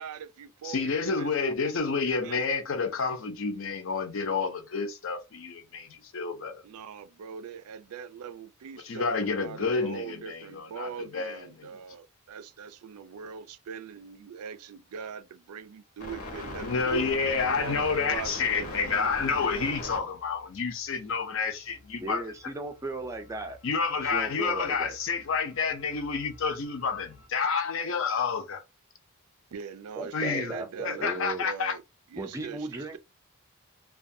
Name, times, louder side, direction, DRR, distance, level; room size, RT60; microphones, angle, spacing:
voice 1, 0.0-2.4 6.6-18.7 29.5-31.8 32.1-33.0, right 7 dB, 90° right, 0.4 m, -42 dB
voice 2, 0.6-6.6 8.8-11.7 16.6-22.2 23.6-28.6 30.1-30.5 30.8-31.8, left 5 dB, 60° left, 0.5 m, -29 dB
sound 1, 16.0-27.3, left 1 dB, 90° left, 0.9 m, -43 dB
voice 3, 22.0-23.6 24.0-25.0 30.0-31.4 32.2-33.0, right 2 dB, 15° right, 0.4 m, -36 dB
2.5 x 2.2 x 2.6 m
head